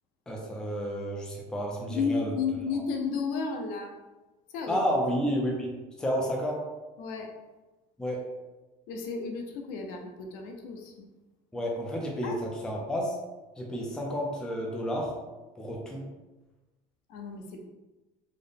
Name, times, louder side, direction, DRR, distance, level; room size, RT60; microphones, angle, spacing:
voice 1, 0.3-2.3 4.7-6.6 8.0-8.3 11.5-13.2 13.6-15.1 15.6-16.1, equal, 5° left, -1 dB, 0.4 m, -31 dB
voice 2, 1.9-3.9 4.5-4.8 7.0-7.3 8.9-11.1 12.2-12.4 17.1-17.7, left 5 dB, 70° left, 2 dB, 0.6 m, -33 dB
3.9 x 2.1 x 3.4 m, 1.1 s
cardioid pair, 170°, 16 cm